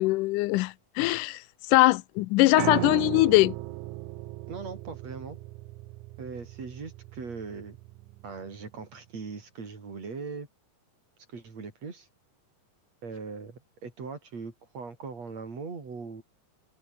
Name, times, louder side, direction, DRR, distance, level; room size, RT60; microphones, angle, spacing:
voice 1, 0.0-3.6, left 20 dB, 90° left, 2.2 m, -22 dB
voice 2, 2.5-3.0 4.5-5.4 6.2-7.8 8.2-10.5 11.3-12.1 13.0-16.2, right 4 dB, 55° right, 5.4 m, -40 dB
Piano, 2.6-8.7, right 18 dB, 80° right, 2.0 m, -37 dB
omnidirectional pair, 3.6 m